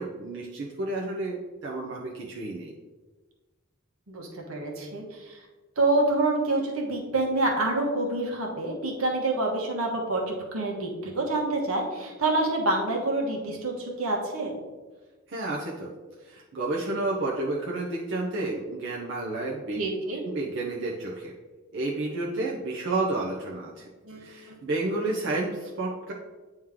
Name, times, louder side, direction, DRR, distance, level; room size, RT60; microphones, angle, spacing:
voice 1, 0.0-2.7 15.3-15.9 16.2-19.8 20.2-21.3 21.7-23.8 24.2-26.1, right 2 dB, 60° right, -3 dB, 0.8 m, -31 dB
voice 2, 4.1-5.4 5.8-14.6 19.8-20.2 24.0-24.3, right 2 dB, 85° right, 0 dB, 1.3 m, -27 dB
9.0 x 3.2 x 3.6 m, 1.3 s
head